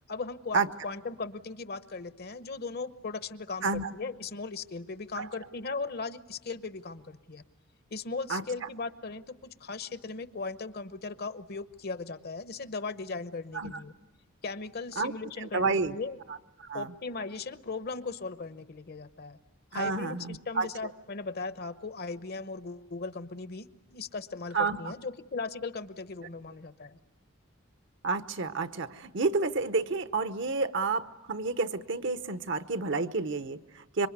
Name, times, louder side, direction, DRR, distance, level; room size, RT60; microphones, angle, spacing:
voice 1, 0.1-7.4 7.9-13.9 14.4-16.2 16.7-19.4 19.7-27.0, left 4 dB, 50° left, 13 dB, 0.9 m, -38 dB
voice 2, 3.6-3.9 5.2-5.3 8.3-8.4 13.5-13.8 15.0-15.1 15.4-16.0 16.6-16.9 19.7-20.7 24.5-24.8 28.0-34.1, right 4 dB, 60° right, 11 dB, 1.0 m, -30 dB
26.5 x 23.5 x 9.5 m, 0.99 s
head